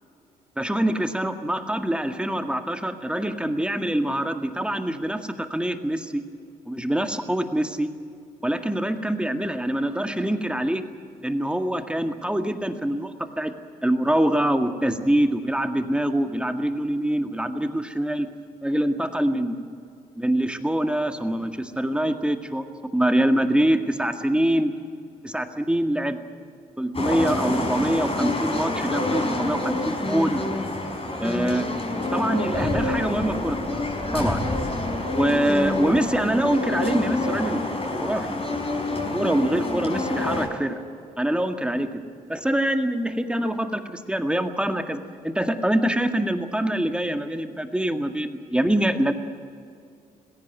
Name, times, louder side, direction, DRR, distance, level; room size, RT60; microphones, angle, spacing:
voice 1, 0.6-6.2 6.7-7.9 8.4-10.8 11.2-13.5 13.8-18.3 18.6-19.6 20.2-22.7 22.9-24.7 25.2-26.2 26.8-30.4 31.2-31.7 32.1-33.9 34.1-34.5 35.1-37.6 38.0-38.4 38.9-40.8 41.2-41.9 42.3-49.1, right 1 dB, 5° right, 7 dB, 1.9 m, -24 dB
sound 1, 26.9-40.5, left 2 dB, 30° left, 5.1 m, -27 dB
21.0 x 17.0 x 9.2 m, 2.4 s
figure-of-eight pair, 40°, 19 cm